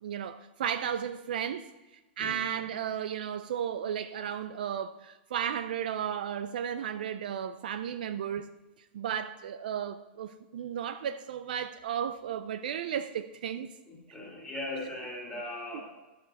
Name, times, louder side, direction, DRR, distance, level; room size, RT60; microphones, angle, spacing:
voice 1, 0.0-8.5 8.9-13.7 15.7-15.8, right 9 dB, 50° right, 0.4 m, -34 dB
voice 2, 13.8-15.8, left 1 dB, 10° left, 1.9 m, -39 dB
12.5 x 6.5 x 4.1 m
supercardioid pair, 180°, 6 cm